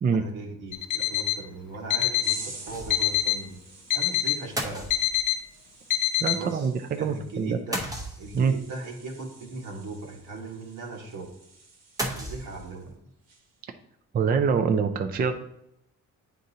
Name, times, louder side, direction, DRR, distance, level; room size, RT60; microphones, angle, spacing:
voice 1, 0.1-3.6 3.9-4.9 6.3-6.7 6.9-7.9 8.2-11.3 12.0-13.0, right 2 dB, 75° right, 1 dB, 1.5 m, -38 dB
Alarm, 0.7-1.4 1.9-2.4 2.9-3.4 3.9-4.4 4.9-5.4 5.9-6.4, left 13 dB, 75° left, 0.6 m, -25 dB
sound 1, 2.2-12.9 13.2-13.6, right 3 dB, 55° right, 1.3 m, -48 dB
sound 2, 2.7-3.2 3.5-3.6 4.6-5.4 7.7-8.6 12.0-12.9, right 1 dB, 10° right, 0.8 m, -34 dB
voice 2, 6.2-7.6 8.3-8.5 14.1-15.3, right 6 dB, 30° right, 7 dB, 0.4 m, -24 dB
9.1 x 3.8 x 2.8 m, 0.80 s
cardioid pair, 150°, 31 cm